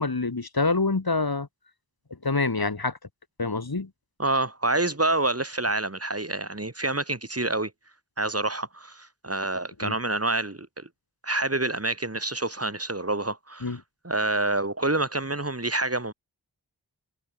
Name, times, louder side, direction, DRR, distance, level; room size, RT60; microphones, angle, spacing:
voice 1, 0.0-1.5 2.2-2.9 3.4-3.9 9.8-9.9 13.6-13.8, left 3 dB, 65° left, 5.6 m, -26 dB
voice 2, 4.2-7.7 8.2-10.9 11.2-16.1, right 2 dB, 35° right, 7.7 m, -27 dB
wide cardioid pair, 60°, 40 cm